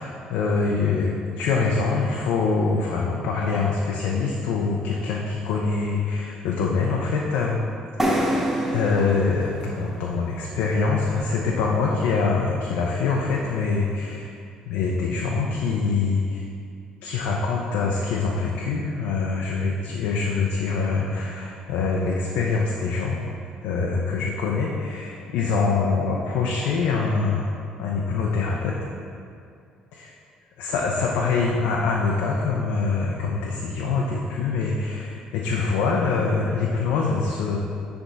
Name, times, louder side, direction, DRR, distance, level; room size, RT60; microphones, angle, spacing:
voice 1, 0.0-7.6 8.0-8.2 8.7-14.4 14.7-16.4 17.0-23.2 23.6-27.5 27.8-28.8 29.9-30.1 30.6-37.6, left 4 dB, 85° left, -2 dB, 0.6 m, -24 dB
sound 1, 8.0-11.6, right 1 dB, 10° right, 0.9 m, -28 dB
9.9 x 3.5 x 4.1 m, 2.4 s
cardioid pair, 100°, 2 cm